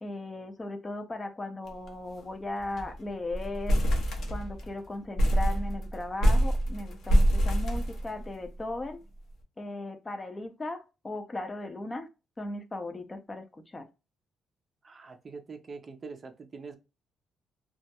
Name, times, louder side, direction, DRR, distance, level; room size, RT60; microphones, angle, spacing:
voice 1, 0.0-3.8 4.3-9.0 9.6-12.1 12.4-13.9, left 2 dB, 25° left, 0.5 m, -37 dB
sound 1, 1.7-1.9 2.2-2.3 2.6-3.0 3.3-4.7 5.2-8.5, equal, 65° left, 0.7 m, -25 dB
voice 2, 14.8-16.8, right 4 dB, 40° right, 0.4 m, -44 dB
2.2 x 2.0 x 2.8 m
cardioid pair, 90°, 0 cm